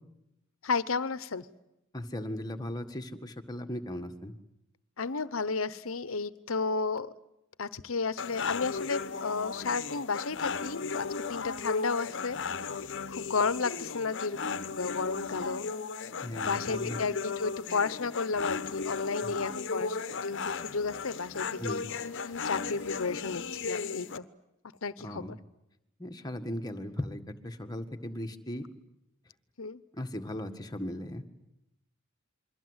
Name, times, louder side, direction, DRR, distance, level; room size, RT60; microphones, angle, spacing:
voice 1, 0.6-1.5 5.0-7.1 7.6-12.4 13.1-15.7 16.4-21.8 22.2-24.2 24.8-25.4 29.6-29.8, left 4 dB, 85° left, 16 dB, 1.0 m, -33 dB
voice 2, 1.9-4.3 16.2-17.0 19.2-19.3 21.6-21.9 25.0-25.3 26.0-28.6 30.0-31.2, left 1 dB, 20° left, 5 dB, 1.8 m, -37 dB
sound 1, 8.2-24.2, left 5 dB, 60° left, 1.0 m, -36 dB
28.0 x 23.0 x 8.1 m, 0.88 s
head